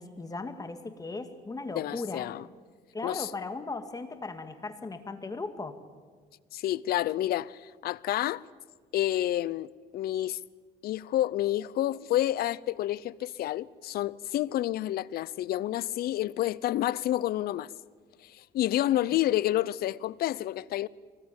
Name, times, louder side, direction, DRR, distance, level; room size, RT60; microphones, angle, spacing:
voice 1, 0.0-2.3 2.9-5.8, left 3 dB, 20° left, 2.2 m, -37 dB
voice 2, 1.7-2.4 3.0-3.3 6.5-8.4 8.9-10.4 10.8-17.7 18.2-20.9, left 13 dB, 65° left, 0.7 m, -29 dB
24.0 x 20.0 x 8.9 m
cardioid pair, 110°, 17 cm